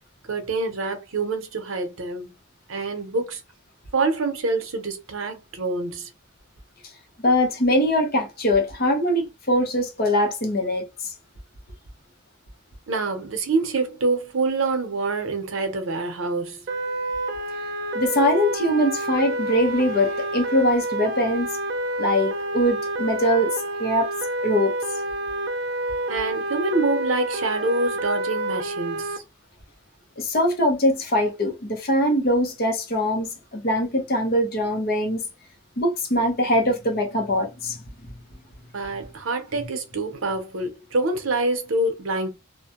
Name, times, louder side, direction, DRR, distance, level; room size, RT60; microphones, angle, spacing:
voice 1, 0.3-2.3 2.7-3.4 3.9-6.1 12.9-16.7 26.1-29.2 38.7-42.3, right 3 dB, 85° right, 0.7 m, -26 dB
voice 2, 7.2-11.1 17.9-21.6 22.0-24.1 24.4-24.8 30.2-35.2 35.8-37.8, left 1 dB, 45° left, 0.8 m, -22 dB
sound 1, 16.7-29.2, right 1 dB, 55° right, 0.3 m, -28 dB
2.5 x 2.1 x 2.8 m
head